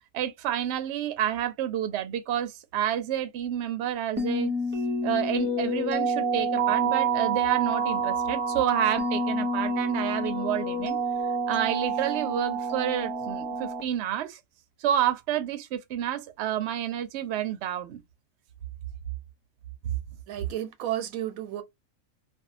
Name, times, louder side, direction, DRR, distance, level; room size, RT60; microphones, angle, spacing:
voice 1, 0.1-4.5 5.0-11.0 11.5-14.4 14.8-18.0 19.8-20.0, right 10 dB, 65° right, 0.8 m, -29 dB
sound 1, 4.2-13.8, right 3 dB, 15° right, 0.4 m, -28 dB
voice 2, 20.3-21.6, right 12 dB, 90° right, 1.1 m, -32 dB
2.6 x 2.3 x 2.5 m
omnidirectional pair, 1.4 m